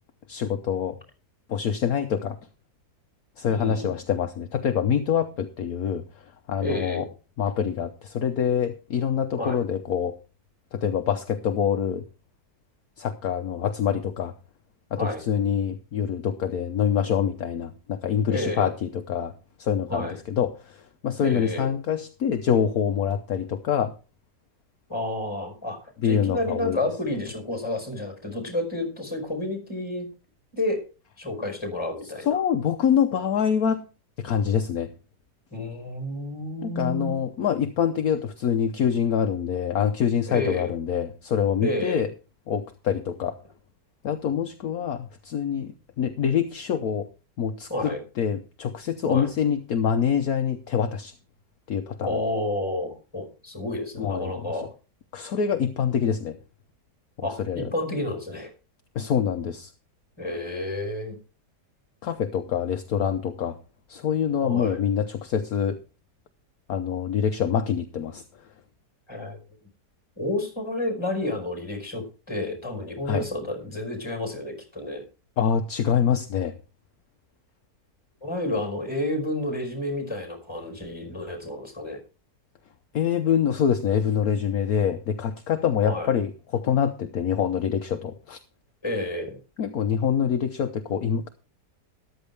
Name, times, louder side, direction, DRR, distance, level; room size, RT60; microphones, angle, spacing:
voice 1, 0.3-1.0 1.5-2.4 3.4-7.1 7.4-10.2 10.7-12.0 13.0-14.3 14.9-19.3 19.6-23.9 26.0-26.8 32.2-33.9 34.2-34.9 36.6-42.1 42.5-43.4 44.0-47.1 47.4-51.1 51.7-52.2 54.0-54.7 55.1-56.4 57.2-57.7 58.9-59.7 62.0-63.6 63.9-65.8 66.7-68.2 73.1-73.3 75.4-76.6 82.9-88.4 89.6-91.3, left 8 dB, 65° left, 7 dB, 1.3 m, -25 dB
voice 2, 3.5-3.9 6.6-7.1 9.4-9.6 15.0-15.2 18.3-18.7 19.9-20.2 21.2-21.7 24.9-30.1 30.5-30.8 31.2-32.4 35.5-37.2 40.3-40.7 41.6-42.0 47.7-48.0 49.0-49.3 52.0-54.7 57.2-58.5 60.2-61.2 64.4-64.8 69.1-69.4 70.2-75.0 78.2-82.0 85.8-86.2 88.8-89.4, left 1 dB, 15° left, 5 dB, 5.2 m, -30 dB
14.0 x 12.0 x 3.4 m, 0.33 s
omnidirectional pair, 1.8 m